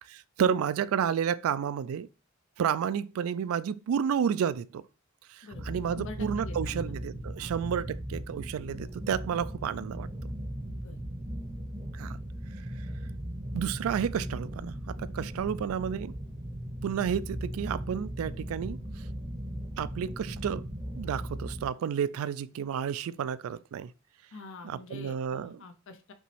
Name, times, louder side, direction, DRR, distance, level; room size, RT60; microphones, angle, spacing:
voice 1, 0.4-2.1 2.6-4.8 5.3-10.1 11.9-12.2 13.5-16.1 16.8-18.8 19.8-20.7 21.0-23.9 24.6-25.6, right 8 dB, 75° right, 0.3 m, -31 dB
sound 1, 5.5-21.7, equal, 25° right, 0.7 m, -38 dB
voice 2, 5.9-7.5 10.7-11.0 24.3-26.1, left 3 dB, 65° left, 0.5 m, -46 dB
5.4 x 3.0 x 3.1 m
head